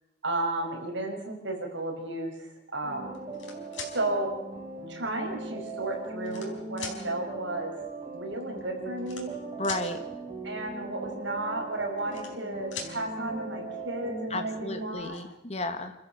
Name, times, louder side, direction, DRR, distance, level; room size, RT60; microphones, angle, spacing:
voice 1, 0.2-3.1 3.8-4.3 4.9-7.7 8.1-9.3 10.4-15.2, right 2 dB, 70° right, 1 dB, 6.2 m, -33 dB
sound 1, 2.8-15.0, right 3 dB, 25° right, 4.4 m, -39 dB
sound 2, 3.1-3.9 4.9-5.0 5.8-6.5 6.8-7.0 8.1-8.2 8.4-8.6 9.0-9.8 11.7-12.5 12.7-12.9 14.4-14.5 14.8-15.2, left 5 dB, 75° left, 4.6 m, -40 dB
voice 2, 9.6-10.1 14.3-15.9, left 2 dB, 35° left, 7 dB, 1.8 m, -33 dB
28.5 x 14.0 x 7.9 m, 0.85 s
head